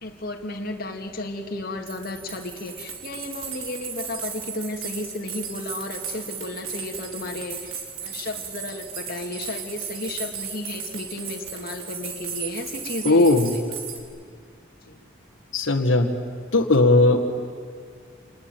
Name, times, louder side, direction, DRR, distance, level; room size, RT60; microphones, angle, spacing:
voice 1, 0.0-13.6 14.9-15.0, left 2 dB, 50° left, 2 dB, 2.1 m, -33 dB
sound 1, 1.6-1.7 1.9-14.0, right 7 dB, 85° right, 3.8 m, -36 dB
voice 2, 13.0-13.5 15.5-16.1 16.5-17.4, left 2 dB, 75° left, 4 dB, 1.8 m, -18 dB
27.0 x 20.5 x 9.2 m, 2.1 s
head